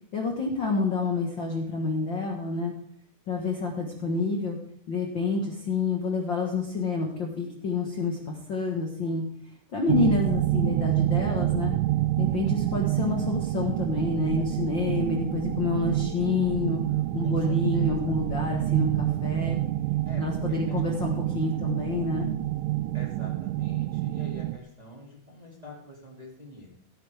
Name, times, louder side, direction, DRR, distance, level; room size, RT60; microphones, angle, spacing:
voice 1, 0.1-2.7 3.3-4.6 4.9-9.2 9.7-11.7 12.2-16.8 17.1-19.6 20.2-22.3, left 3 dB, 45° left, 0 dB, 1.8 m, -28 dB
sound 1, 9.9-24.6, right 16 dB, 80° right, 2.1 m, -27 dB
voice 2, 17.2-19.0 20.0-21.7 22.9-26.7, left 1 dB, 15° right, -2 dB, 2.4 m, -46 dB
15.5 x 14.0 x 3.6 m, 0.63 s
omnidirectional pair, 3.6 m